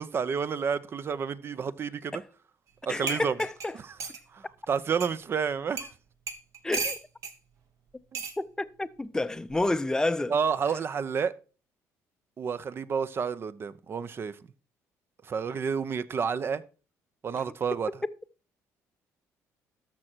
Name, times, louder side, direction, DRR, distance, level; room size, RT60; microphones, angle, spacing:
voice 1, 0.0-2.2 2.8-3.4 4.3-5.9 8.1-8.2 10.3-11.3 12.4-14.4 15.2-16.6 17.2-17.9, right 6 dB, 40° right, 0.7 m, -30 dB
sound 1, 2.7-2.8 3.1-4.2 5.0-5.1 5.8-5.9 6.3-7.4 8.1-8.4 9.5-9.8, right 4 dB, 60° right, 1.5 m, -35 dB
voice 2, 2.9-3.7 6.6-7.0 8.4-10.3 17.3-17.4 18.0-18.1, left 2 dB, 10° left, 0.6 m, -29 dB
13.0 x 6.1 x 4.5 m
cardioid pair, 95°, 6 cm